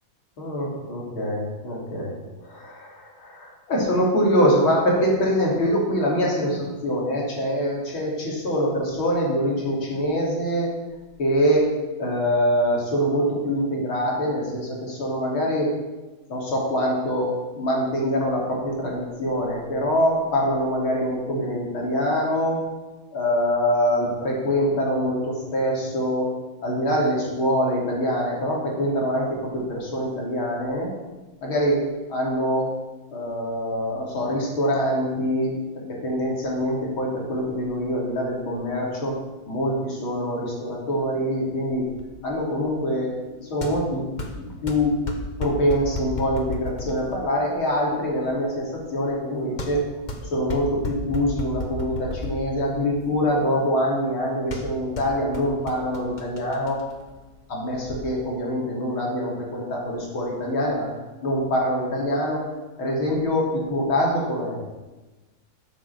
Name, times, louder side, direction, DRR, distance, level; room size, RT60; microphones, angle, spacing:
voice 1, 0.4-2.1 2.4-10.7 11.2-11.7 12.0-15.7 16.3-22.6 23.1-26.3 26.6-30.9 31.4-32.7 33.1-35.6 35.9-39.2 39.5-41.9 42.2-44.1 44.4-45.0 45.4-49.9 50.3-56.8 57.5-60.9 61.2-62.5 62.8-64.6, equal, 80° left, -2 dB, 3.7 m, -24 dB
sound 1, 41.8-58.0, left 2 dB, 30° left, 1.1 m, -35 dB
13.0 x 7.4 x 6.8 m, 1.2 s
omnidirectional pair, 2.2 m